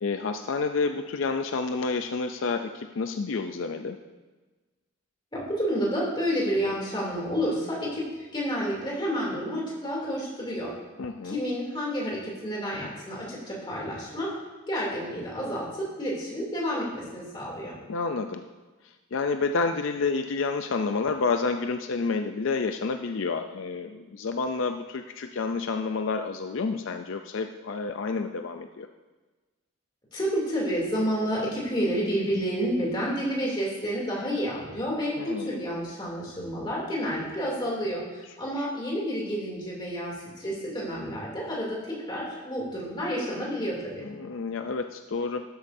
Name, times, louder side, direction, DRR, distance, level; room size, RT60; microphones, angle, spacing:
voice 1, 0.0-4.0 11.0-11.4 17.9-18.4 19.1-28.9 35.2-35.5 38.6-38.7 44.0-45.4, left 4 dB, 70° left, 6 dB, 0.5 m, -29 dB
voice 2, 5.3-8.0 8.3-10.7 11.2-14.3 14.7-17.8 30.1-44.1, equal, 20° left, -4 dB, 2.8 m, -30 dB
12.5 x 10.5 x 2.7 m, 1.2 s
head